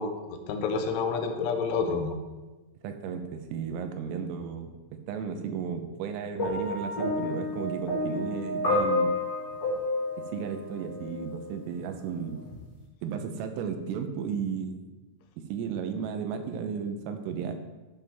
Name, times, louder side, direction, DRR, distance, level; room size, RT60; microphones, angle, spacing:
voice 1, 0.0-2.2, left 4 dB, 80° left, 5 dB, 3.0 m, -29 dB
voice 2, 2.8-9.1 10.3-12.4 13.0-14.8 15.4-17.5, right 7 dB, 85° right, 7 dB, 3.5 m, -34 dB
sound 1, 6.4-11.5 12.4-12.6, left 2 dB, 45° left, 1.4 m, -30 dB
12.5 x 7.8 x 3.5 m, 1.2 s
omnidirectional pair, 5.8 m